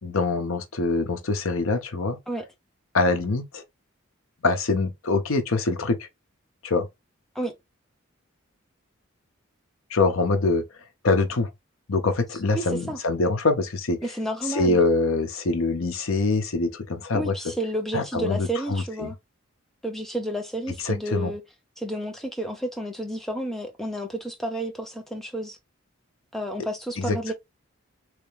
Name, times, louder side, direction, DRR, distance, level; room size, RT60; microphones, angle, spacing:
voice 1, 0.0-2.2 2.9-3.6 4.4-6.1 6.6-6.9 9.9-10.6 11.0-11.5 11.9-14.0 14.5-17.3 17.9-19.1 20.8-21.3 27.0-27.3, left 3 dB, 80° left, 0.8 m, -24 dB
voice 2, 12.5-13.0 14.0-14.8 17.1-19.1 19.8-21.4 21.8-25.6 26.3-27.3, right 1 dB, ahead, 0.7 m, -31 dB
3.3 x 2.9 x 3.3 m
head